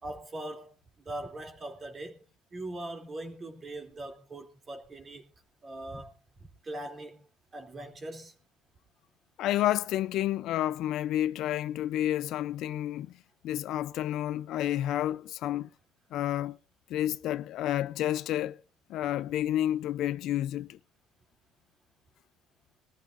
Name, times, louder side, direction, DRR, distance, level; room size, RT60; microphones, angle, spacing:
voice 1, 0.0-2.2 2.5-5.3 5.6-6.2 6.6-8.3, right 1 dB, 30° right, 3.1 m, -41 dB
voice 2, 9.4-13.1 13.4-15.7 16.1-16.6 16.9-18.6 18.9-20.8, left 12 dB, 65° left, 0.5 m, -30 dB
21.0 x 14.0 x 2.6 m
cardioid pair, 115°, 0 cm